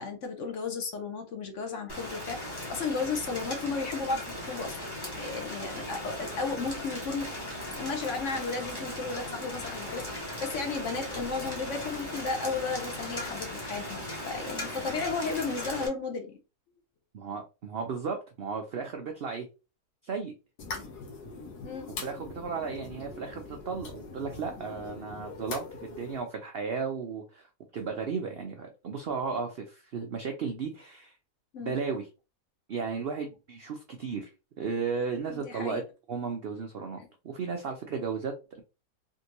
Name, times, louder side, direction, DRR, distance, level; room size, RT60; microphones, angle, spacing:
voice 1, 0.0-4.8 5.2-7.3 7.8-16.4 21.6-21.9 31.5-31.8 35.3-35.8 37.0-37.1, left 4 dB, 60° left, 0.9 m, -34 dB
Rain, 1.9-15.9, left 1 dB, 20° left, 0.9 m, -38 dB
voice 2, 17.1-19.5 20.0-20.3 22.0-27.5 27.7-31.1 31.6-32.1 32.7-34.3 34.6-35.8 36.1-37.0 37.2-38.6, right 5 dB, 80° right, 0.5 m, -34 dB
sound 1, 20.6-26.2, left 4 dB, 85° left, 1.4 m, -42 dB
3.6 x 2.6 x 2.9 m
omnidirectional pair, 1.7 m